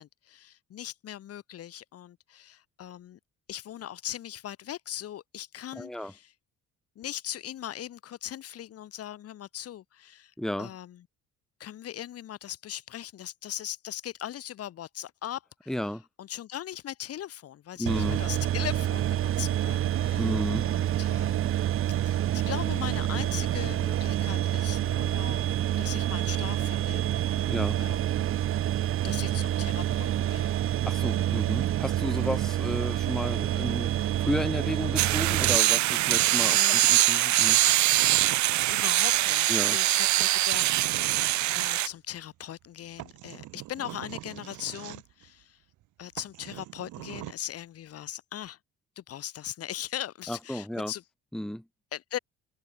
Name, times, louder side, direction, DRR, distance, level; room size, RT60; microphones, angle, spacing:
voice 1, 0.0-3.2 3.5-6.3 7.0-10.3 10.6-11.0 11.6-15.7 16.2-20.3 20.6-21.6 22.0-28.3 29.0-30.5 36.0-36.9 38.7-45.6 46.0-48.6 49.0-51.0 51.9-52.2, left 11 dB, 55° left, 3.8 m, -40 dB
voice 2, 5.8-6.1 10.4-10.7 15.7-16.0 17.8-18.2 20.1-20.7 27.5-27.8 30.9-37.6 39.5-39.8 50.3-50.9 51.3-51.6, left 1 dB, ahead, 2.0 m, -33 dB
sound 1, 17.9-35.6, right 12 dB, 45° right, 0.8 m, -27 dB
sound 2, 35.0-41.9, right 16 dB, 70° right, 1.3 m, -23 dB
sound 3, 35.7-37.0 37.5-39.1 40.2-41.7 42.7-42.8 43.0-45.3 45.8-45.9 46.2-47.3, right 16 dB, 85° right, 4.9 m, -42 dB
cardioid pair, 165°, 30 cm